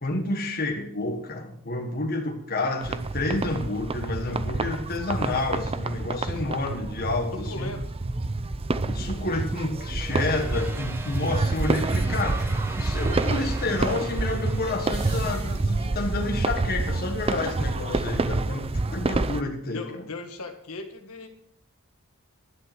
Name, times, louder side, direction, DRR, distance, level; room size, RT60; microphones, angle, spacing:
voice 1, 0.0-7.7 8.8-20.1, left 2 dB, 45° left, 3 dB, 1.6 m, -30 dB
sound 1, 2.8-19.4, right 3 dB, 25° right, 0.6 m, -28 dB
voice 2, 7.3-7.8 17.8-17.9 19.7-21.3, left 2 dB, 80° left, 4 dB, 1.8 m, -37 dB
sound 2, 10.1-15.6, right 1 dB, 10° right, 1.1 m, -41 dB
sound 3, 14.6-16.4 18.6-18.7, right 4 dB, 60° right, 6.3 m, -48 dB
11.5 x 10.0 x 6.0 m, 0.67 s
head